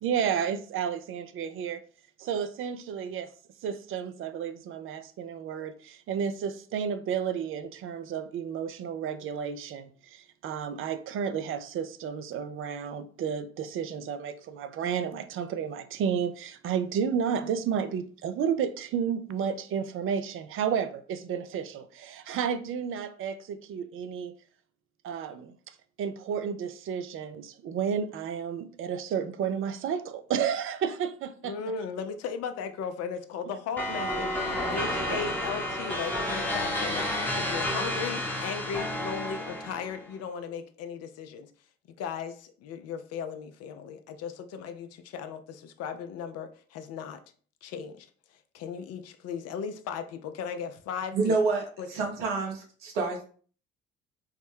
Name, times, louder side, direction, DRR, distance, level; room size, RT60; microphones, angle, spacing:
voice 1, 0.0-1.8 2.2-3.3 3.6-24.3 25.0-25.6 26.0-31.6 35.1-35.2 37.4-37.5, right 7 dB, 45° right, 0.4 m, -32 dB
voice 2, 31.4-41.5 42.0-47.2 47.6-48.1 48.5-51.3 51.8-51.9, left 6 dB, 55° left, 0.5 m, -37 dB
sound 1, 33.8-40.0, left 1 dB, 5° left, 0.8 m, -31 dB
voice 3, 51.1-53.2, right 4 dB, 75° right, 0.9 m, -28 dB
3.1 x 2.1 x 3.2 m
hypercardioid pair, 50°, 30 cm